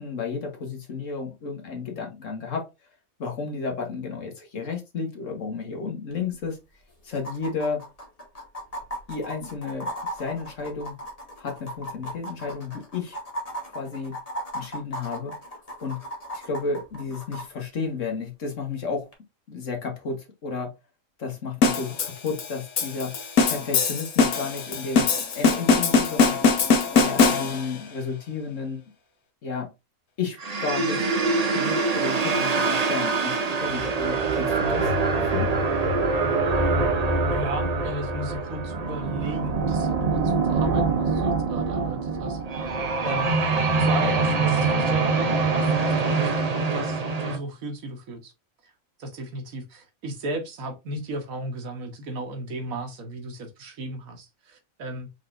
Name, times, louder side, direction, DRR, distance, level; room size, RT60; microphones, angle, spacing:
voice 1, 0.0-2.7 3.2-6.6 7.0-7.8 9.1-10.9 11.4-13.2 13.7-14.2 14.5-15.4 15.8-16.0 16.3-19.1 19.5-20.7 21.2-23.2 23.5-25.1 25.3-26.7 26.9-28.8 29.4-29.7 30.2-31.0 31.5-35.6, left 5 dB, 65° left, 1.7 m, -32 dB
sound 1, 6.1-6.2 6.4-6.5 7.1-17.4 19.1-19.2, right 1 dB, 25° left, 1.3 m, -36 dB
sound 2, 21.6-27.8, left 4 dB, 90° left, 1.4 m, -22 dB
sound 3, 30.4-47.4, right 3 dB, 35° right, 0.6 m, -24 dB
voice 2, 37.3-42.4 43.0-43.3 43.8-46.3 46.7-48.3 49.0-55.1, right 2 dB, 80° right, 1.5 m, -35 dB
4.9 x 4.0 x 2.5 m
omnidirectional pair, 1.5 m